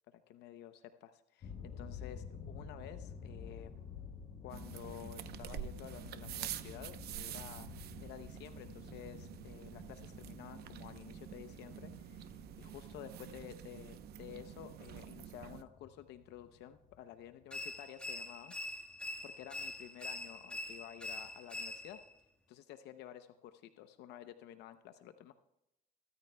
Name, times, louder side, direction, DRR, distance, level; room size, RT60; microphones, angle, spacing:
voice 1, 0.3-3.8 4.4-7.7 8.0-18.8 19.2-22.0 22.5-25.3, left 11 dB, 85° left, 9 dB, 0.7 m, -52 dB
sound 1, 1.4-17.7, left 6 dB, 50° left, 5.8 m, -51 dB
sound 2, 4.5-15.6, right 11 dB, 70° right, 0.8 m, -48 dB
sound 3, 17.5-22.1, left 1 dB, 5° left, 1.6 m, -44 dB
23.0 x 13.5 x 2.3 m, 0.87 s
cardioid pair, 110°, 17 cm